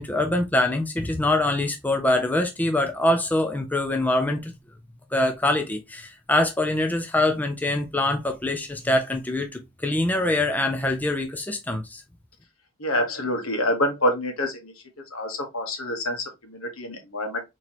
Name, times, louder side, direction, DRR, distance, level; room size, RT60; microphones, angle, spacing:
voice 1, 0.0-4.5 5.1-12.0, left 1 dB, 10° left, 0.4 m, -24 dB
voice 2, 12.8-14.7 15.1-17.4, left 1 dB, 75° left, 1.1 m, -27 dB
4.2 x 3.0 x 2.9 m
head